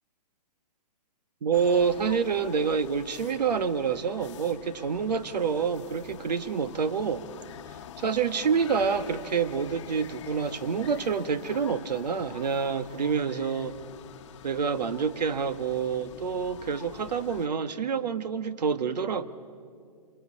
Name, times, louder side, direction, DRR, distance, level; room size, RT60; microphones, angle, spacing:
voice 1, 1.4-7.2 8.0-13.7 14.4-19.3, right 6 dB, 80° right, 13 dB, 1.4 m, -27 dB
sound 1, 1.5-17.5, left 10 dB, 45° left, 1.0 m, -46 dB
26.5 x 23.0 x 8.5 m, 2.2 s
hypercardioid pair, 160°, 21 cm